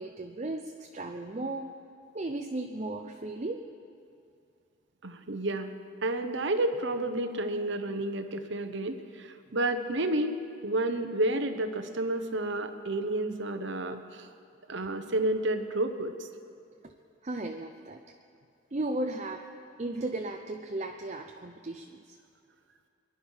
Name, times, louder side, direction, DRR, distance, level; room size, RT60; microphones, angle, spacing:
voice 1, 0.0-1.7 2.1-3.7 17.2-18.0 18.7-19.5 19.8-22.2, right 2 dB, 35° right, 4 dB, 0.6 m, -35 dB
voice 2, 5.0-5.7 6.0-14.3 14.7-16.3, right 1 dB, 65° right, 8 dB, 1.0 m, -30 dB
23.0 x 11.0 x 5.7 m, 2.6 s
head